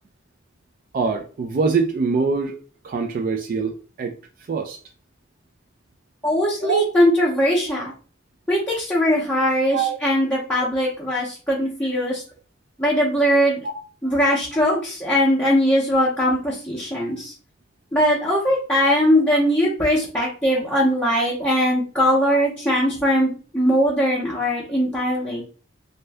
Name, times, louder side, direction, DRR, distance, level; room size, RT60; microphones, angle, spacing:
voice 1, 0.9-2.6 2.8-4.1 4.5-4.8 6.6-6.8 9.7-10.0 17.0-17.1, right 4 dB, 45° right, 3 dB, 0.3 m, -24 dB
voice 2, 6.2-7.9 8.5-12.2 12.8-13.6 14.0-17.3 17.9-25.4, equal, 10° left, -7 dB, 0.6 m, -20 dB
2.6 x 2.2 x 3.3 m, 0.37 s
head